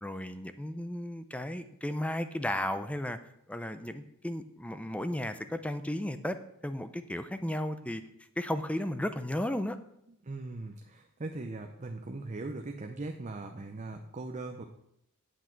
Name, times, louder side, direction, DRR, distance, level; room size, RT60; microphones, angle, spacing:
voice 1, 0.0-3.2 3.5-8.0 8.4-9.8, left 1 dB, 5° left, 10 dB, 0.4 m, -34 dB
voice 2, 10.2-14.6, right 2 dB, 35° right, 4 dB, 0.6 m, -40 dB
8.7 x 8.1 x 4.5 m, 0.75 s
head